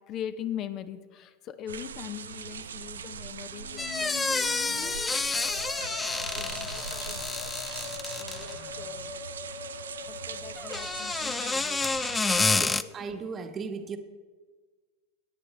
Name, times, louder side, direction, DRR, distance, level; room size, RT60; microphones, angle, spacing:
voice 1, 0.1-5.2 5.5-7.5 8.1-9.1 10.1-11.8 12.3-12.9, left 10 dB, 45° left, 10 dB, 0.8 m, -42 dB
sound 1, 1.7-12.5, right 7 dB, 90° right, 0.5 m, -41 dB
Musical instrument, 3.5-11.6, left 7 dB, 60° left, 1.2 m, -43 dB
sound 2, 3.8-8.6 10.6-12.8, left 3 dB, 15° left, 0.4 m, -29 dB
voice 2, 12.6-14.0, right 5 dB, 30° right, 7 dB, 1.2 m, -36 dB
17.0 x 9.5 x 3.3 m, 1.4 s
hypercardioid pair, 100°, 0 cm